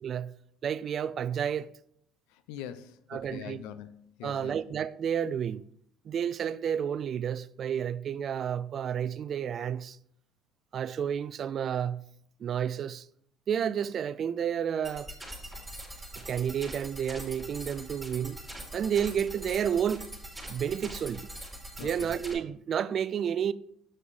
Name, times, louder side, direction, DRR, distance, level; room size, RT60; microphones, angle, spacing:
voice 1, 0.0-0.3 0.6-1.7 3.1-3.6 4.2-5.6 6.1-10.0 10.7-12.0 12.4-13.1 13.5-15.1 16.2-18.4 18.7-20.1 20.5-21.3 21.8-23.5, right 8 dB, 50° right, 0.3 m, -31 dB
voice 2, 2.3-4.6 21.8-22.1, left 10 dB, 85° left, 0.6 m, -43 dB
sound 1, 14.8-22.3, right 1 dB, 5° right, 3.0 m, -43 dB
7.7 x 6.0 x 4.0 m
supercardioid pair, 90°, 0 cm